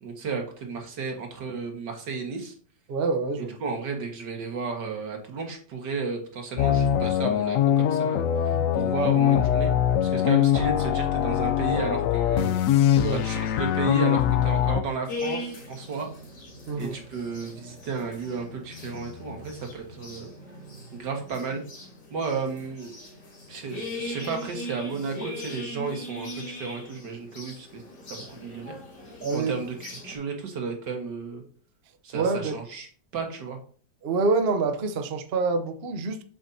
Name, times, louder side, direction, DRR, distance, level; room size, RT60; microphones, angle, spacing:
voice 1, 0.0-2.5 3.4-9.7 10.0-12.6 13.1-16.1 16.8-20.3 20.9-21.6 22.1-23.0 23.5-27.8 28.1-28.8 29.3-31.4 32.0-32.9 33.1-33.6, right 4 dB, 80° right, 3 dB, 2.1 m, -33 dB
voice 2, 2.9-3.6 8.5-8.7 13.0-13.2 16.7-17.0 29.2-29.5 32.1-32.6 34.0-36.2, right 3 dB, 50° right, 7 dB, 0.8 m, -26 dB
sound 1, 6.6-14.8, left 10 dB, 70° left, 0.8 m, -22 dB
sound 2, 15.1-30.2, left 1 dB, 90° left, 2.7 m, -40 dB
7.7 x 7.0 x 2.7 m, 0.43 s
omnidirectional pair, 1.8 m